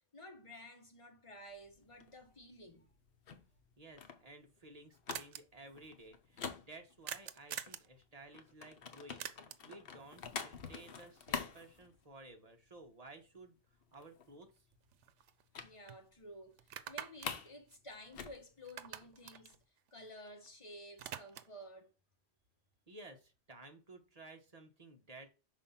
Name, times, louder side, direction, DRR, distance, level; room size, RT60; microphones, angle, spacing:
voice 1, 0.0-2.9 15.6-19.6 19.9-21.9, equal, 30° left, 1.3 m, -53 dB
sound 1, 1.5-7.3 7.6-12.5 12.8-13.1 13.4-13.5 13.8-14.5 15.5-15.8 16.1-16.2 16.6-17.6 17.8-19.6, left 6 dB, 60° left, 1.0 m, -47 dB
voice 2, 3.8-13.6 13.9-14.5 22.9-25.3, right 2 dB, 35° right, 1.3 m, -55 dB
sound 2, 4.4-4.5 4.7-4.8 5.1-5.4 7.1-7.9 9.2-9.7 13.9-14.0 14.4-15.6 15.9-16.0 16.6-18.4 18.6-20.5 20.8-21.6, right 10 dB, 90° right, 0.9 m, -47 dB
5.6 x 4.0 x 5.7 m
omnidirectional pair, 1.2 m